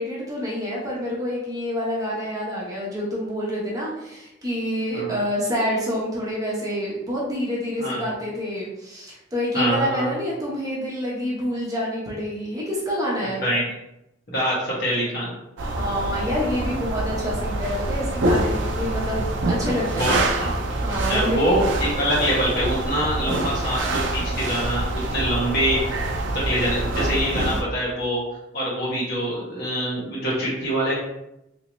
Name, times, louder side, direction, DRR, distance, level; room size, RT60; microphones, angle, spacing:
voice 1, 0.0-13.5 15.6-20.4 20.8-21.5, equal, 20° right, -6 dB, 0.9 m, -27 dB
voice 2, 7.8-8.1 9.5-10.1 13.4-13.6 14.3-15.3 20.0-20.5 21.1-23.9 24.1-24.8 25.1-26.0 26.3-28.2 28.5-31.0, equal, 60° left, -6 dB, 1.5 m, -24 dB
sound 1, 15.6-27.6, right 2 dB, 85° right, 0.5 m, -26 dB
3.3 x 2.8 x 3.0 m, 0.88 s
head